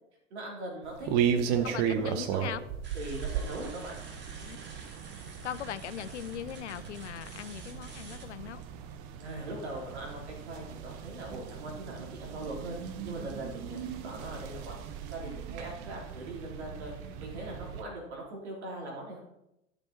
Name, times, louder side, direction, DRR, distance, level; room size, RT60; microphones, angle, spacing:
voice 1, 0.3-2.6 2.9-4.0 9.2-12.8 13.0-14.8 15.1-16.9 17.2-19.2, right 1 dB, 70° right, -1 dB, 3.7 m, -41 dB
sound 1, 0.8-17.8, right 8 dB, 45° right, 1.0 m, -36 dB
voice 2, 1.6-2.6 4.4-4.6 5.4-8.6, left 10 dB, 75° left, 16 dB, 0.6 m, -40 dB
sound 2, 2.8-8.3 8.6-8.7 9.2-9.4 11.5-11.6 12.0-12.1 12.4-12.5 12.9-13.0 13.3-13.4 13.8-13.9 14.2-14.3 14.6-14.7 15.1-15.2 15.6-15.7, right 3 dB, 30° right, 2.3 m, -50 dB
12.0 x 7.0 x 4.4 m, 0.86 s
figure-of-eight pair, 85°, 35 cm